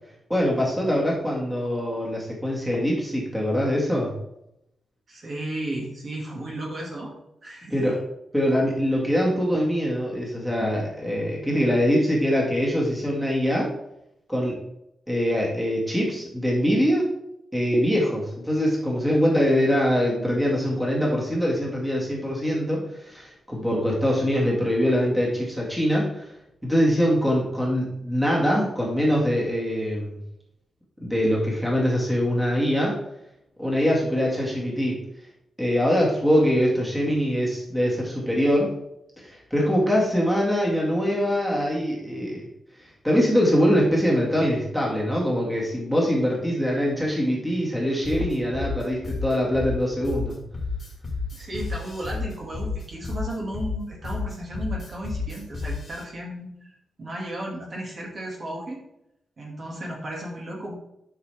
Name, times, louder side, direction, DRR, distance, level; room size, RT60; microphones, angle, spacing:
voice 1, 0.3-4.1 7.7-8.0 8.3-13.7 14.3-14.6 15.1-17.1 17.5-26.3 26.6-30.2 31.0-33.0 33.6-35.0 35.6-38.7 39.3-42.4 43.0-50.4, equal, 5° right, -4 dB, 1.9 m, -23 dB
voice 2, 5.1-7.2 7.4-8.0 51.3-58.8 59.4-60.7, right 1 dB, 35° right, -2 dB, 1.9 m, -34 dB
sound 1, 48.0-56.0, left 4 dB, 35° left, 1.7 m, -31 dB
11.0 x 6.0 x 3.4 m, 0.81 s
wide cardioid pair, 175°, 0 cm